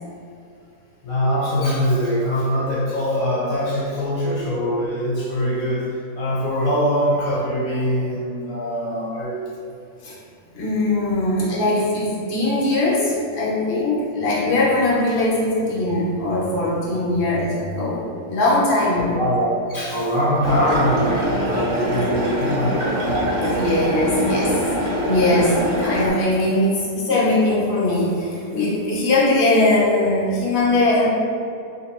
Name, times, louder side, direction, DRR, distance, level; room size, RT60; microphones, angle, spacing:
voice 1, 1.0-9.4 19.1-22.8, equal, 70° left, -7 dB, 1.2 m, -22 dB
voice 2, 10.5-19.2 23.4-24.5 25.0-31.1, left 2 dB, 50° left, -7 dB, 1.1 m, -20 dB
sound 1, 20.4-26.1, right 1 dB, 50° right, 1.2 m, -23 dB
2.9 x 2.9 x 4.3 m, 2.5 s
omnidirectional pair, 1.6 m